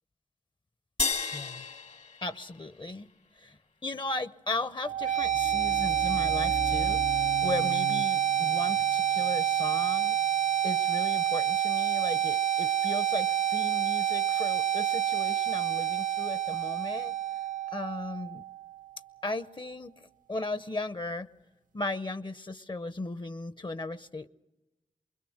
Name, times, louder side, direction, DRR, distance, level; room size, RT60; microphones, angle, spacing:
sound 1, 1.0-3.6, left 4 dB, 60° left, 1.3 m, -34 dB
voice 1, 1.3-1.7 2.2-3.1 3.4-10.2 10.6-17.1 17.7-18.4 19.2-19.9 20.3-21.3 21.7-24.3, left 2 dB, 35° left, 15 dB, 0.7 m, -36 dB
sound 2, 4.8-18.8, right 10 dB, 75° right, 0.8 m, -28 dB
sound 3, 4.9-10.8, left 2 dB, 80° left, 2.7 m, -40 dB
24.5 x 21.5 x 6.4 m, 1.1 s
cardioid pair, 45°, 13 cm